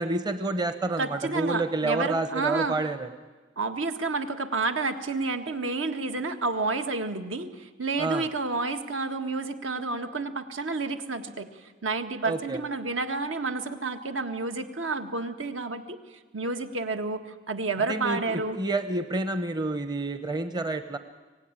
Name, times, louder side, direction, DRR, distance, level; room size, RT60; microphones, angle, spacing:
voice 1, 0.0-3.1 8.0-8.3 12.3-12.6 17.9-21.0, right 2 dB, 20° right, 10 dB, 0.8 m, -29 dB
voice 2, 1.0-2.8 3.6-16.0 16.3-18.6, right 3 dB, 75° right, 7 dB, 1.7 m, -30 dB
24.5 x 17.5 x 9.8 m, 1.3 s
head